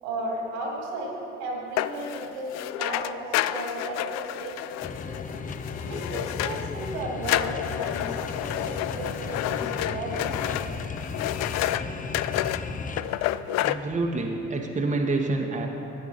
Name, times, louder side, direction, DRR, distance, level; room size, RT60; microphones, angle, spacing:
voice 1, 0.0-4.6 5.8-10.7, right 1 dB, 70° right, -1 dB, 2.6 m, -35 dB
sound 1, 1.8-6.9 7.2-11.8 12.1-12.6 13.0-13.8, left 14 dB, 55° left, 0.4 m, -30 dB
sound 2, 4.8-13.0, left 4 dB, 25° left, 0.7 m, -35 dB
voice 2, 13.6-15.7, right 3 dB, 20° right, 1 dB, 1.1 m, -27 dB
13.5 x 9.1 x 4.2 m, 3.0 s
hypercardioid pair, 60°, 33 cm